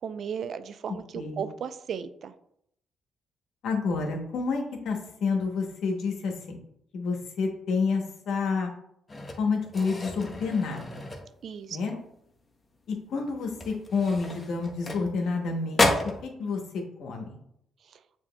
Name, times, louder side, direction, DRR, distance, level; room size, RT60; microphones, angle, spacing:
voice 1, 0.0-2.3 11.4-12.0 16.4-16.6 17.8-18.0, right 7 dB, 60° right, 12 dB, 0.3 m, -36 dB
voice 2, 3.6-6.6 6.9-8.7 9.4-11.0 11.7-12.0 12.9-15.9 16.2-17.4, left 4 dB, 75° left, 2 dB, 0.9 m, -29 dB
sound 1, 9.1-11.7 12.1-12.4 12.7-12.9 13.5-15.4 15.7-16.2, left 2 dB, 25° left, 0.7 m, -31 dB
6.6 x 2.8 x 2.2 m, 0.73 s
cardioid pair, 90°, 0 cm